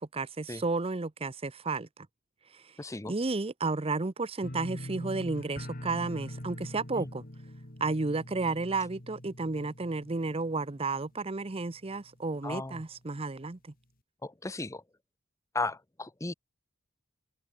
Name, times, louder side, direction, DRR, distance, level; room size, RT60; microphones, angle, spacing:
voice 1, 0.0-2.1 2.5-2.6 3.1-7.2 7.8-13.7, right 3 dB, 30° right, 0.7 m, -32 dB
voice 2, 2.8-3.1 7.0-7.1 12.4-12.8 14.2-14.8 15.5-16.3, left 2 dB, 15° left, 0.7 m, -35 dB
sound 1, 4.4-11.3 11.6-12.1 12.5-12.6, left 1 dB, 45° left, 3.7 m, -43 dB
open air
head